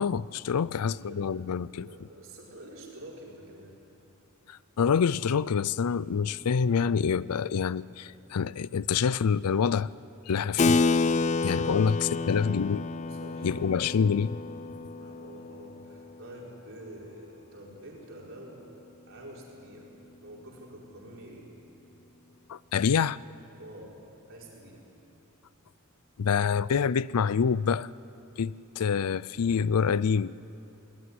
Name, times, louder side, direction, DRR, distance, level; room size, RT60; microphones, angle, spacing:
voice 1, 0.0-1.9 4.5-9.9 10.3-10.8 11.4-12.8 13.4-14.4 22.5-23.2 26.2-27.9 28.4-30.3, left 6 dB, 90° left, 0.5 m, -26 dB
voice 2, 0.6-3.8 11.2-14.0 14.9-18.7 19.1-19.9 20.2-21.5 23.6-24.0 24.3-24.8, right 1 dB, 60° right, 5.1 m, -47 dB
Keyboard (musical), 10.6-16.6, left 3 dB, 30° left, 0.4 m, -29 dB
20.5 x 19.5 x 9.8 m
head